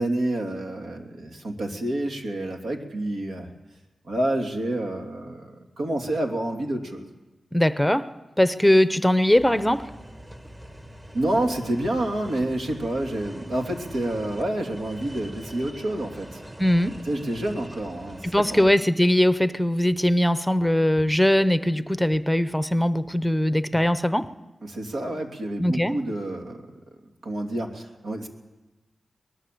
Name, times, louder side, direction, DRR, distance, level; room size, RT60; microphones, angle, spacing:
voice 1, 0.0-3.5 4.0-7.1 11.1-16.4 17.1-18.7 24.6-26.6 27.2-28.3, right 1 dB, 90° right, 2.9 m, -28 dB
voice 2, 7.5-9.9 16.6-17.0 18.3-24.3 25.6-26.0, left 1 dB, 5° left, 0.7 m, -21 dB
sound 1, 9.3-18.8, equal, 30° right, 1.9 m, -43 dB
24.0 x 20.0 x 7.8 m
wide cardioid pair, 95°, 0 cm